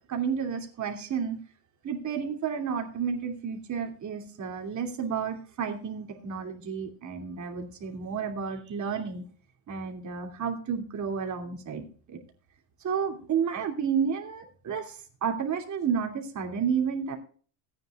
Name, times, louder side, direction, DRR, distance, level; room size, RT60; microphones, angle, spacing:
voice 1, 0.1-1.4 1.8-9.2 9.7-12.2 12.8-17.2, right 6 dB, 35° right, 3 dB, 2.9 m, -31 dB
17.0 x 9.3 x 2.4 m, 0.42 s
supercardioid pair, 110°, 48 cm